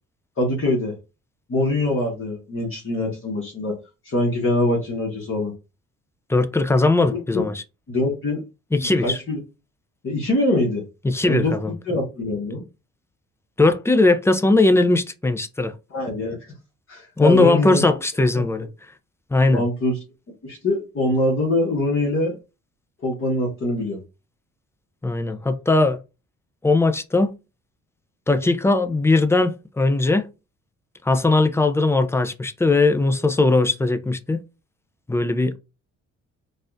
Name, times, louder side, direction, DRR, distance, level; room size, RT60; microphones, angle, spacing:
voice 1, 0.4-0.9 1.5-3.8 4.0-5.5 7.1-7.4 7.9-8.4 9.0-9.4 10.0-10.8 11.2-11.5 11.9-12.6 15.9-16.5 16.9-18.0 18.3-18.4 19.5-20.0 20.4-22.4 23.0-24.0, left 1 dB, 45° left, 1.4 m, -23 dB
voice 2, 6.3-7.6 8.7-9.2 11.0-11.7 13.6-15.7 17.2-18.7 19.3-19.6 25.0-26.0 26.6-27.3 28.3-30.3 31.0-34.4 35.1-35.6, left 2 dB, 10° left, 0.4 m, -19 dB
4.0 x 2.4 x 2.6 m
cardioid pair, 90°, 30 cm